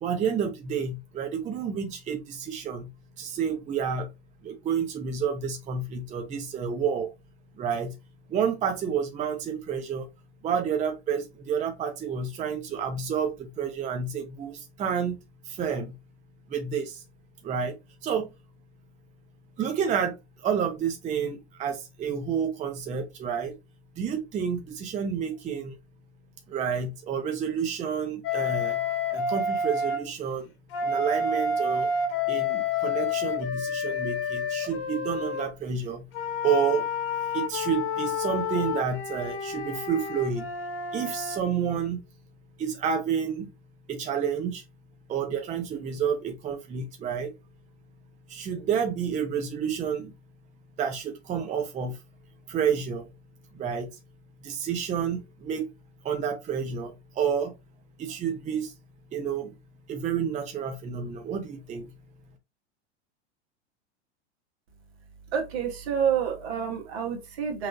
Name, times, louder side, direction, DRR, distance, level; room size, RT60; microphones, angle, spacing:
voice 1, 0.0-2.9 3.2-4.1 4.4-7.1 7.6-8.0 8.3-10.1 10.4-15.2 15.5-15.9 16.5-17.0 17.4-17.7 18.0-18.3 19.6-23.5 24.0-25.8 26.5-28.8 29.1-30.5 30.8-31.9 32.3-36.0 36.4-36.9 37.3-40.5 40.9-42.0 42.6-43.5 43.9-44.6 45.1-47.3 48.3-50.1 50.8-52.0 52.5-53.1 53.5-53.9 54.4-55.7 56.0-57.5 58.0-58.7 59.1-59.5 59.9-61.9, right 7 dB, 20° right, 0.7 m, -29 dB
Wind instrument woodwind instrument, 28.2-30.0 30.7-35.5 36.1-41.4, left 4 dB, 40° left, 1.2 m, -29 dB
voice 2, 65.3-67.7, right 8 dB, 60° right, 1.5 m, -28 dB
5.7 x 2.6 x 2.5 m
hypercardioid pair, 105°, 34 cm